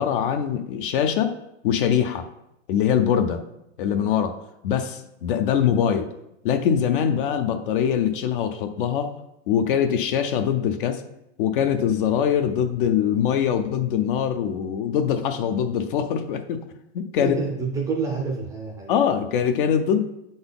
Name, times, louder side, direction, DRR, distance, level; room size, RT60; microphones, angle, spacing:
voice 1, 0.0-1.3 1.6-2.2 2.7-3.4 3.8-4.4 4.6-6.1 6.4-9.1 9.5-11.0 11.4-16.6 16.9-17.3 18.9-20.0, left 8 dB, 45° left, 8 dB, 0.6 m, -23 dB
voice 2, 17.2-19.0, right 4 dB, 10° right, 0 dB, 0.5 m, -28 dB
7.8 x 3.9 x 3.9 m, 0.83 s
supercardioid pair, 155°, 36 cm